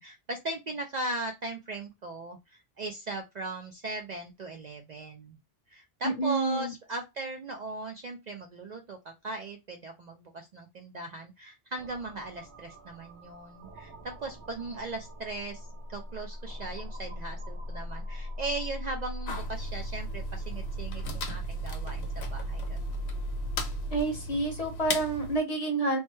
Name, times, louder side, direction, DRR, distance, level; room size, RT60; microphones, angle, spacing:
voice 1, 0.0-5.4 5.7-22.8, right 2 dB, 55° right, 3 dB, 0.5 m, -38 dB
voice 2, 6.0-6.7 23.9-26.0, right 2 dB, 40° left, 3 dB, 0.9 m, -28 dB
sound 1, 11.8-24.0, right 1 dB, 85° right, 0.9 m, -38 dB
sound 2, 19.3-25.4, left 2 dB, 80° left, 1.0 m, -38 dB
3.2 x 2.1 x 3.0 m, 0.21 s
omnidirectional pair, 1.1 m